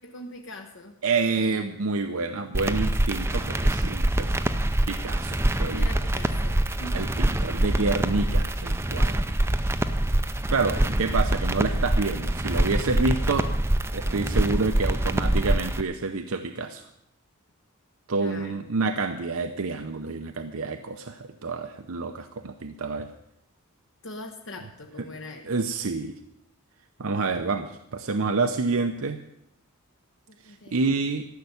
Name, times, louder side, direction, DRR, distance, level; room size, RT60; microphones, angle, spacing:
voice 1, 0.0-1.0 5.8-7.1 18.1-18.7 24.0-25.5 30.3-30.9, left 1 dB, 60° left, 3 dB, 1.0 m, -42 dB
voice 2, 1.0-4.3 4.9-5.9 6.9-9.2 10.5-13.5 13.9-16.9 18.1-23.1 25.4-26.1 27.0-29.2 30.4-31.2, right 3 dB, 75° right, 7 dB, 0.7 m, -28 dB
sound 1, 2.5-15.8, right 1 dB, 10° right, 0.5 m, -25 dB
14.0 x 6.8 x 9.5 m, 0.80 s
head